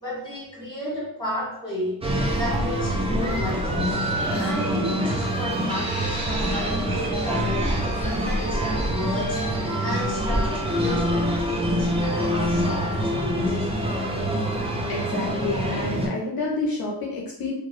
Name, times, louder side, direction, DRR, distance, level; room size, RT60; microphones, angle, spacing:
voice 1, 0.0-2.0 2.3-9.5 9.8-14.3, left 1 dB, 10° left, -5 dB, 1.2 m, -33 dB
sound 1, 2.0-16.1, equal, 15° right, 0.4 m, -25 dB
sound 2, 5.7-8.2 9.2-9.3, right 2 dB, 35° right, 0.9 m, -35 dB
voice 2, 14.9-17.5, left 2 dB, 60° left, -1 dB, 0.5 m, -29 dB
2.9 x 2.1 x 2.4 m, 0.80 s
wide cardioid pair, 95°, 43 cm